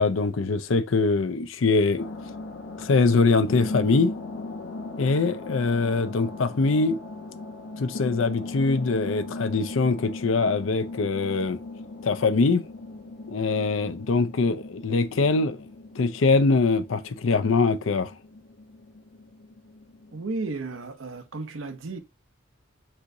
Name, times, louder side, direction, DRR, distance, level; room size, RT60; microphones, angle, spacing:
voice 1, 0.0-2.1 2.8-4.1 5.0-7.0 7.8-11.6 12.0-12.6 13.3-15.7 16.0-18.1, left 3 dB, 85° left, 0.5 m, -23 dB
sound 1, 2.0-20.2, left 2 dB, 70° left, 0.9 m, -38 dB
voice 2, 20.1-22.0, right 3 dB, 90° right, 0.7 m, -33 dB
4.7 x 4.3 x 2.6 m
head